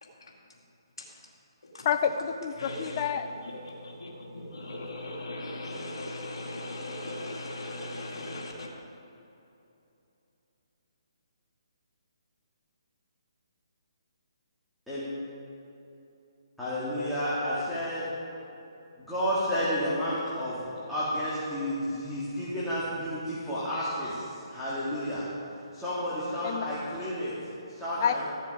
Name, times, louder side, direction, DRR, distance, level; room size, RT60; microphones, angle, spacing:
voice 1, 0.0-0.6 1.0-1.1 1.6-1.9 2.6-3.1 3.4-8.7, left 1 dB, 75° left, -2 dB, 2.3 m, -39 dB
voice 2, 1.8-3.3 26.4-26.7 28.0-28.2, left 8 dB, 35° left, 8 dB, 0.7 m, -28 dB
voice 3, 16.6-18.1 19.1-25.3 25.7-27.3 27.7-28.2, equal, ahead, -13 dB, 2.4 m, -31 dB
15.0 x 7.4 x 5.1 m, 2.8 s
figure-of-eight pair, 145°, 3 cm